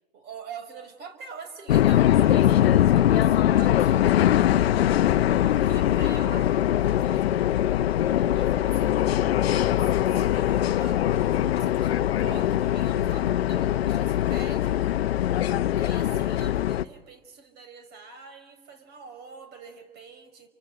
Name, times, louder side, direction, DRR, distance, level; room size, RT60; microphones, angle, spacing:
voice 1, 0.1-5.0 5.4-7.3 8.3-9.0 9.5-14.9 15.1-15.2 15.8-20.5, right 6 dB, 35° right, 10 dB, 5.1 m, -45 dB
sound 1, 1.7-16.8, left 12 dB, 80° left, 1.0 m, -22 dB
30.0 x 24.5 x 7.8 m, 1.1 s
hypercardioid pair, 120°, 30 cm